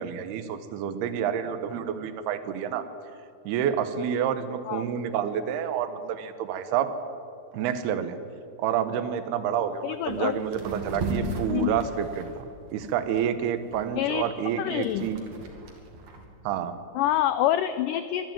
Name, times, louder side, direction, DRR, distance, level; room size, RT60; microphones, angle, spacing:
voice 1, 0.0-2.8 3.4-6.9 7.5-8.2 8.6-12.5 12.7-15.2 16.4-16.8, right 8 dB, 85° right, 11 dB, 3.0 m, -29 dB
sound 1, 9.6-9.7 10.0-10.2 10.5-13.2 13.7-16.2, right 2 dB, 55° right, 3.4 m, -35 dB
voice 2, 9.8-10.4 11.5-11.7 14.0-14.3 14.6-15.1 17.0-18.3, left 12 dB, 90° left, 12 dB, 1.8 m, -26 dB
24.0 x 12.0 x 9.2 m, 2.5 s
omnidirectional pair, 4.5 m